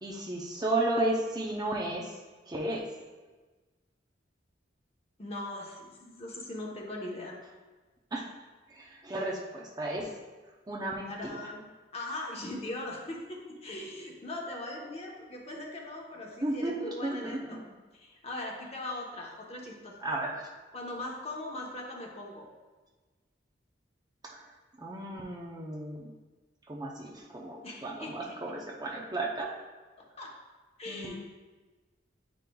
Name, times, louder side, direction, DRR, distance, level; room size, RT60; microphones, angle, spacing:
voice 1, 0.0-2.1 2.5-2.8 8.1-8.3 8.7-10.1 10.7-11.5 16.4-17.4 20.0-20.4 24.3-24.5 24.8-26.1 26.7-29.5 30.9-31.2, right 1 dB, 20° right, -2 dB, 0.6 m, -33 dB
voice 2, 5.2-7.4 11.1-11.6 11.9-17.6 17.9-19.9 20.7-22.5 27.6-28.5 30.0-30.3 30.8-31.2, left 1 dB, 35° left, -1 dB, 1.0 m, -40 dB
9.0 x 5.2 x 2.3 m, 1.3 s
head